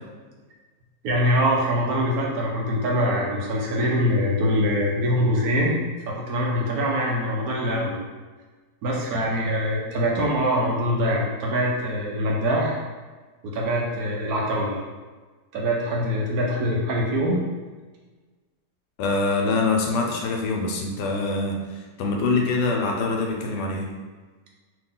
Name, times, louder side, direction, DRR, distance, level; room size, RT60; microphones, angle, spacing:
voice 1, 1.0-5.8 6.1-8.0 8.8-12.8 13.4-14.8 15.5-17.4, equal, 70° right, -2 dB, 1.0 m, -23 dB
voice 2, 19.0-23.9, left 3 dB, 75° left, 0 dB, 1.1 m, -24 dB
2.9 x 2.8 x 3.7 m, 1.3 s
omnidirectional pair, 1.9 m